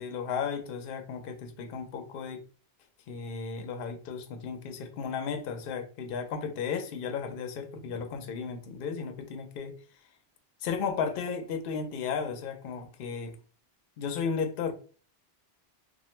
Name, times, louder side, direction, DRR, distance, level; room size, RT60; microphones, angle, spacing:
voice 1, 0.0-2.4 3.1-9.8 10.6-13.4 14.0-14.7, left 6 dB, 65° left, 0.7 m, -34 dB
2.8 x 2.4 x 3.1 m
omnidirectional pair, 1.1 m